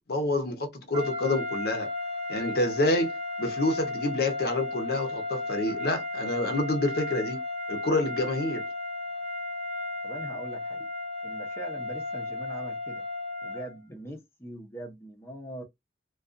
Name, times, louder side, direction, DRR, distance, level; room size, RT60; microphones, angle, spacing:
voice 1, 0.1-1.9 2.3-3.1 3.4-7.4 7.7-8.7, left 2 dB, 60° left, 0.7 m, -28 dB
sound 1, 0.9-13.8, left 2 dB, 85° right, 0.8 m, -34 dB
voice 2, 10.0-10.8 11.2-13.1 13.4-15.6, right 1 dB, 15° left, 0.6 m, -42 dB
2.4 x 2.3 x 2.5 m
head